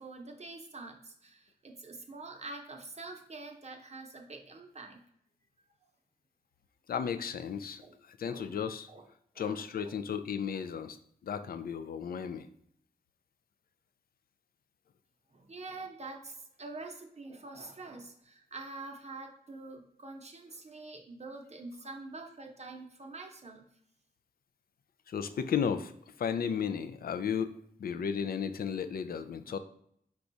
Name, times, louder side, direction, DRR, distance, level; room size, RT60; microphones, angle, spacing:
voice 1, 0.0-5.0 7.8-7.9 8.2-8.5 8.9-9.0 9.3-9.9 15.3-23.7, right 3 dB, 40° right, 2 dB, 0.7 m, -46 dB
voice 2, 6.9-7.8 8.1-8.9 9.4-11.0 11.2-12.5 25.1-25.9 26.2-27.5 27.8-29.6, left 7 dB, 65° left, 10 dB, 0.4 m, -34 dB
4.8 x 2.3 x 3.9 m, 0.70 s
wide cardioid pair, 85°, 16 cm